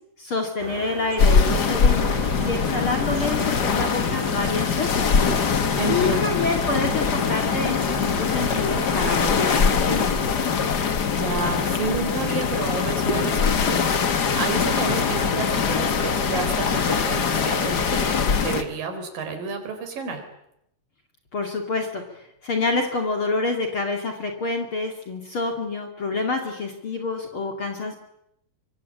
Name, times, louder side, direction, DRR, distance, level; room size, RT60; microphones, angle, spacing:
voice 1, 0.2-5.1 5.4-10.2 21.3-27.9, left 3 dB, 35° left, 3 dB, 2.9 m, -28 dB
sound 1, 0.6-9.3, right 10 dB, 90° right, 3.4 m, -38 dB
sound 2, 1.2-18.6, left 6 dB, 80° left, 0.9 m, -22 dB
voice 2, 5.8-6.4 11.0-20.2, right 4 dB, 60° right, 6 dB, 5.7 m, -30 dB
25.0 x 24.0 x 8.7 m, 0.79 s
omnidirectional pair, 4.5 m